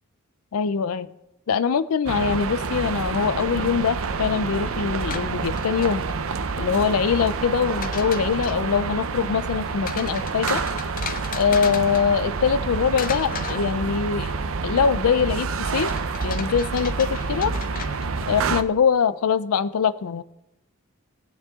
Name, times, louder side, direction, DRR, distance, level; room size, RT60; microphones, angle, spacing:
voice 1, 0.5-1.1 1.5-6.0 6.6-10.6 11.3-14.3 14.6-15.9 16.2-17.5 18.3-20.2, left 6 dB, 80° left, 15 dB, 0.4 m, -23 dB
sound 1, 2.1-18.6, right 4 dB, 65° right, 0.6 m, -28 dB
sound 2, 5.0-6.4 7.4-8.7 9.8-12.6 12.9-14.3 15.9-18.4, left 6 dB, 40° left, 0.7 m, -37 dB
19.0 x 9.3 x 3.6 m, 0.89 s
head